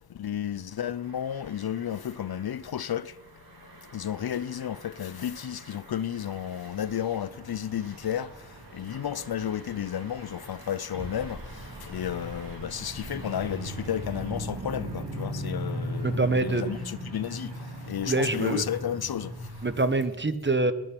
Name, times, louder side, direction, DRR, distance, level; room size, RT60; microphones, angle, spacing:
voice 1, 0.1-3.2 3.9-19.5, left 9 dB, 65° left, 0.5 m, -32 dB
sound 1, 0.7-14.4, right 1 dB, 55° right, 2.8 m, -48 dB
sound 2, 7.1-19.9, equal, 85° right, 2.7 m, -38 dB
voice 2, 16.0-16.6 18.0-18.6 19.6-20.7, right 2 dB, 25° right, 1.1 m, -25 dB
20.0 x 7.7 x 6.0 m
wide cardioid pair, 45°, 40 cm